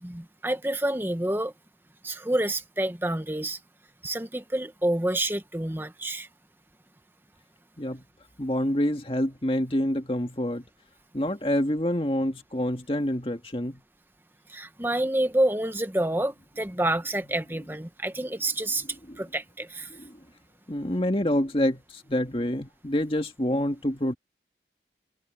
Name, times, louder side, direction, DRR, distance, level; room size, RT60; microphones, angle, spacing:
voice 1, 0.0-1.5 2.0-3.6 4.0-6.3 14.5-18.8 19.2-19.9, right 1 dB, 10° right, 1.2 m, -28 dB
voice 2, 8.4-10.6 11.1-13.8 19.1-19.2 20.7-21.8 22.1-24.1, left 1 dB, 30° left, 2.0 m, -27 dB
head